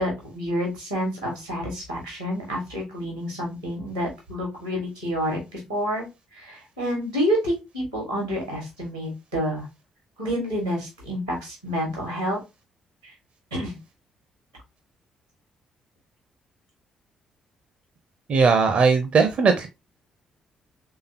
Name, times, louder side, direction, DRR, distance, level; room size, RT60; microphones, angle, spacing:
voice 1, 0.0-6.1 6.3-9.7 10.2-12.4 13.5-13.7, equal, 90° right, 0 dB, 1.7 m, -28 dB
voice 2, 18.3-19.7, right 5 dB, 45° right, 7 dB, 0.6 m, -19 dB
3.7 x 3.4 x 2.8 m, 0.24 s
figure-of-eight pair, 40°, 3 cm